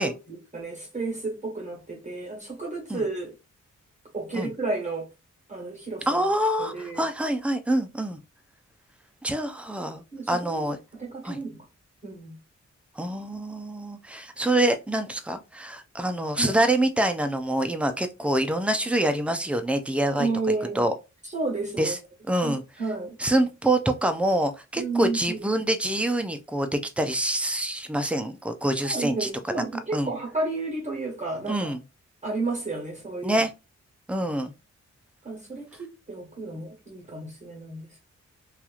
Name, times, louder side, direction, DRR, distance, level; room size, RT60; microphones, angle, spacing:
voice 1, 0.0-3.3 4.1-5.1 5.5-6.3 6.6-7.0 10.1-11.7 12.0-12.3 16.3-16.6 20.2-20.9 21.2-22.0 22.4-23.2 24.7-25.5 28.8-31.7 32.2-33.4 35.2-38.0, right 3 dB, 25° right, 1.3 m, -32 dB
voice 2, 6.1-8.2 9.2-10.8 11.2-11.4 13.0-20.3 20.8-20.9 21.8-22.0 22.3-22.6 23.2-29.3 29.9-30.1 31.5-31.8 33.2-33.5 34.1-34.5, right 1 dB, 5° right, 0.4 m, -26 dB
2.9 x 2.4 x 2.4 m
cardioid pair, 75°, 30 cm